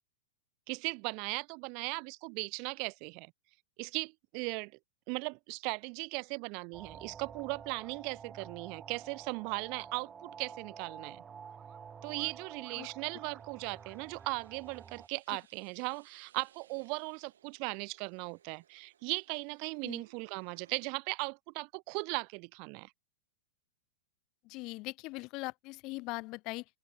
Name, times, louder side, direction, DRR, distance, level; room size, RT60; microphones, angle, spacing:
voice 1, 0.7-3.3 3.8-4.7 5.1-11.2 12.0-22.9, right 35 dB, 50° right, 0.5 m, -38 dB
sound 1, 6.7-15.1, right 7 dB, 20° right, 2.5 m, -50 dB
sound 2, 10.9-21.0, right 9 dB, 80° right, 4.1 m, -66 dB
voice 2, 24.4-26.7, left 23 dB, 45° left, 0.5 m, -40 dB
open air
hypercardioid pair, 115°, 0 cm